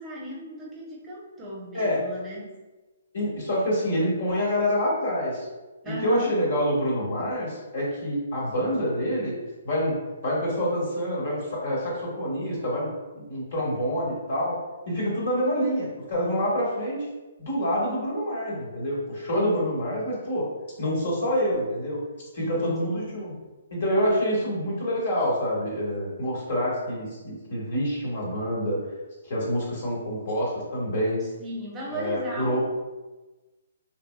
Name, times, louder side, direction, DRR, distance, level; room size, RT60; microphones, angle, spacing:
voice 1, 0.0-2.5 5.8-6.3 16.4-16.6 22.4-22.9 31.4-32.6, right 1 dB, 15° right, -4 dB, 0.8 m, -36 dB
voice 2, 3.1-5.5 5.8-9.3 9.6-12.9 13.1-14.6 14.9-17.0 17.4-20.4 20.8-22.0 22.3-23.4 23.7-28.8 29.2-31.2 31.9-32.6, equal, 55° left, -4 dB, 1.5 m, -27 dB
3.8 x 3.4 x 2.3 m, 1.2 s
figure-of-eight pair, 130°, 0 cm